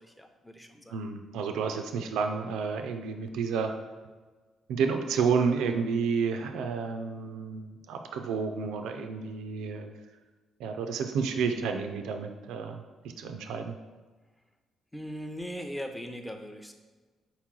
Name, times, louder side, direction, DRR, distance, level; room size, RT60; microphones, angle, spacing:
voice 1, 0.0-1.0 14.9-16.7, equal, 5° left, 5 dB, 0.5 m, -39 dB
voice 2, 0.9-3.7 4.7-9.9 10.6-12.8 13.2-13.8, right 5 dB, 90° right, 5 dB, 0.4 m, -30 dB
4.1 x 3.0 x 3.7 m, 1.3 s
cardioid pair, 90°, 0 cm